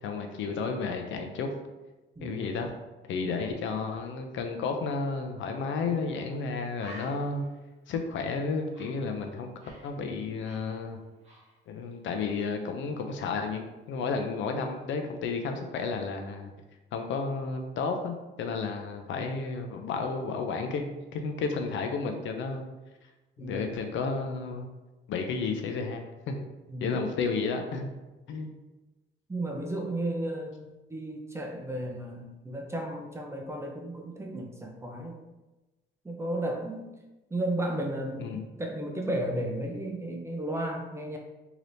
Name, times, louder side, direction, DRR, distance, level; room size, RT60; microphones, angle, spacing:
voice 1, 0.0-1.5 2.2-2.7 3.1-7.5 7.9-9.5 9.8-11.0 11.7-16.5 16.9-22.6 23.4-24.7 25.1-26.5 26.8-27.9 28.3-28.5 38.2-38.4, left 4 dB, 75° left, 5 dB, 0.5 m, -32 dB
voice 2, 2.2-2.5 5.9-6.0 23.4-23.7 26.7-27.0 29.3-35.2 36.0-36.8 37.3-41.2, right 1 dB, 15° right, 1 dB, 0.5 m, -34 dB
Bird, 5.9-6.1 6.4-6.5 6.8-9.9 10.2-11.9 12.2-12.5, right 1 dB, 35° right, 1.0 m, -51 dB
3.2 x 2.8 x 2.6 m, 1.1 s
cardioid pair, 90°, 20 cm